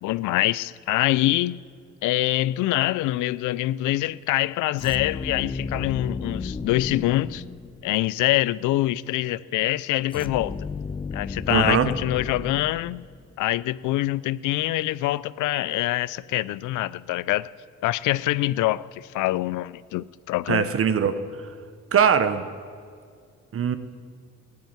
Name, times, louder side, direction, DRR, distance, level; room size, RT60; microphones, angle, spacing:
voice 1, 0.0-1.6 2.0-7.4 7.8-10.6 11.1-13.1 13.4-17.5 17.8-20.7, left 16 dB, 85° left, 0.5 m, -25 dB
sound 1, 4.8-8.1 10.1-13.4, left 4 dB, 20° left, 0.5 m, -34 dB
voice 2, 11.5-11.9 20.5-21.2 21.9-22.5 23.5-23.8, right 7 dB, 45° right, 1.0 m, -21 dB
15.0 x 8.3 x 9.1 m
cardioid pair, 90°, 30 cm